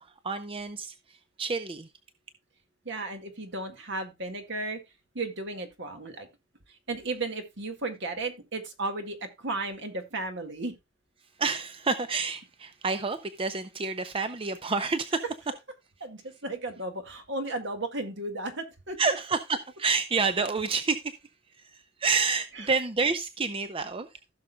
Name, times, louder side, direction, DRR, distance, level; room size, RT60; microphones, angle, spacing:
voice 1, 0.2-1.9 11.4-15.2 19.0-21.1 21.6-24.1, right 4 dB, 30° right, 0.6 m, -29 dB
voice 2, 2.9-4.8 5.1-6.3 6.9-10.7 16.0-19.0 22.6-22.7, right 2 dB, 65° right, 1.9 m, -34 dB
15.5 x 6.4 x 2.3 m
head